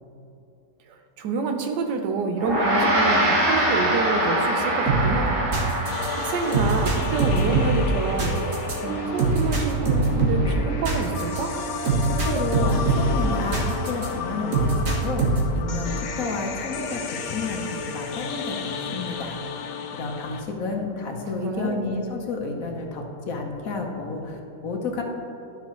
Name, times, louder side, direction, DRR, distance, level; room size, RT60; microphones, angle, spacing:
voice 1, 0.9-5.4 6.1-11.6 21.3-21.9, right 4 dB, 85° right, 4 dB, 1.4 m, -28 dB
Gong, 2.4-11.9, right 1 dB, 70° right, 2.4 m, -26 dB
sound 1, 4.9-14.1 14.5-15.6, right 3 dB, 50° right, 1.5 m, -24 dB
sound 2, 5.9-20.4, left 6 dB, 80° left, 1.2 m, -34 dB
voice 2, 12.1-19.4 19.9-25.0, left 3 dB, 60° left, 2 dB, 1.2 m, -30 dB
12.0 x 5.7 x 3.1 m, 2.8 s
omnidirectional pair, 1.8 m